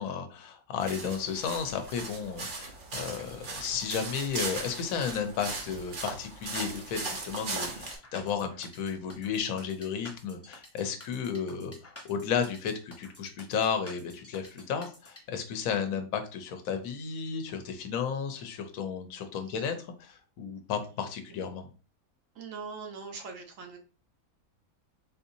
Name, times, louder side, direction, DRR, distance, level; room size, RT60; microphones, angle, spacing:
voice 1, 0.0-19.7 20.0-21.7, left 6 dB, 75° left, 6 dB, 1.1 m, -33 dB
sound 1, 0.8-8.0, right 3 dB, 45° right, 0.7 m, -38 dB
sound 2, 7.7-15.2, left 1 dB, 20° left, 0.4 m, -50 dB
voice 2, 22.3-23.8, right 5 dB, 65° right, 3 dB, 1.2 m, -42 dB
4.1 x 2.7 x 2.6 m, 0.36 s
omnidirectional pair, 1.5 m